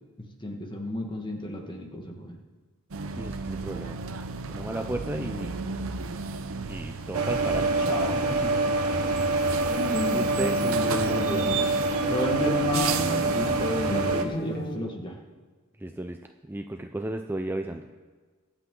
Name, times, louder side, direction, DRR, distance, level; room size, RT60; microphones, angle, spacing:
voice 1, 0.4-2.4 7.9-8.2 10.6-11.6 12.1-15.1, left 1 dB, 20° left, 2 dB, 1.6 m, -32 dB
sound 1, 2.9-14.2, right 5 dB, 65° right, 0.7 m, -35 dB
voice 2, 3.2-4.0 4.5-5.5 6.7-7.8 8.4-8.5 9.9-10.6 10.9-11.5 15.7-17.9, right 1 dB, 10° right, 5 dB, 0.5 m, -34 dB
sound 2, 7.1-14.2, right 2 dB, 90° right, 1.2 m, -26 dB
sound 3, 9.7-14.8, left 1 dB, 45° left, 1.7 m, -34 dB
23.5 x 8.3 x 3.8 m, 1.4 s
head